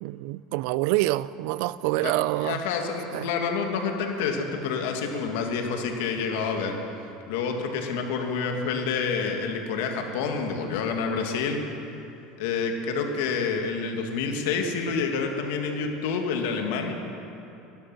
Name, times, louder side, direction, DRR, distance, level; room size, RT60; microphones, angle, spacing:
voice 1, 0.0-2.6 3.1-3.3, right 18 dB, 70° right, 18 dB, 0.4 m, -26 dB
voice 2, 2.4-6.8 7.3-11.6 12.4-16.9, left 5 dB, 80° left, 3 dB, 1.8 m, -28 dB
17.0 x 11.5 x 6.0 m, 2.9 s
supercardioid pair, 130°, 0 cm